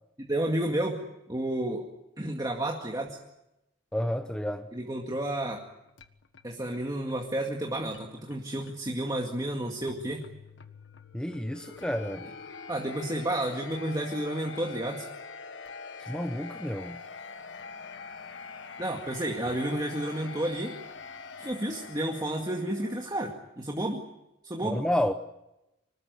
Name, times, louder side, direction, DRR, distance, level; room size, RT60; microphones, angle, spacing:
voice 1, 0.2-1.0 1.3-1.8 2.2-3.2 4.7-5.6 6.4-10.2 12.7-15.1 18.8-20.7 21.4-24.0 24.4-24.8, right 1 dB, 20° right, 2.1 m, -31 dB
voice 2, 3.9-4.7 11.1-12.3 16.0-17.0 24.6-25.1, left 1 dB, 5° left, 0.9 m, -30 dB
sound 1, 5.0-23.1, left 5 dB, 75° left, 1.6 m, -45 dB
25.5 x 20.0 x 9.6 m
head